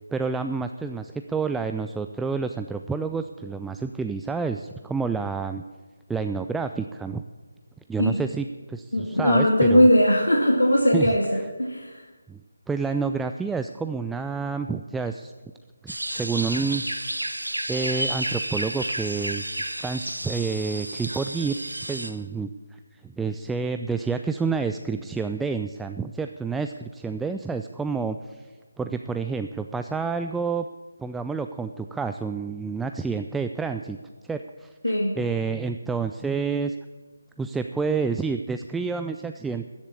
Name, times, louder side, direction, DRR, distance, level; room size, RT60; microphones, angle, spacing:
voice 1, 0.1-5.6 6.1-7.2 7.9-9.9 10.9-11.5 12.3-12.4 12.7-15.3 15.8-16.8 17.7-19.6 19.8-21.6 21.9-28.5 28.8-30.7 31.0-34.0 34.3-36.8 37.4-39.7, right 5 dB, 5° right, 7 dB, 0.3 m, -29 dB
voice 2, 8.9-11.9 34.8-35.1, equal, 85° left, 1 dB, 2.1 m, -19 dB
sound 1, 15.9-22.1, right 1 dB, 85° right, 1.7 m, -31 dB
14.0 x 7.3 x 9.6 m, 1.4 s
figure-of-eight pair, 155°, 0 cm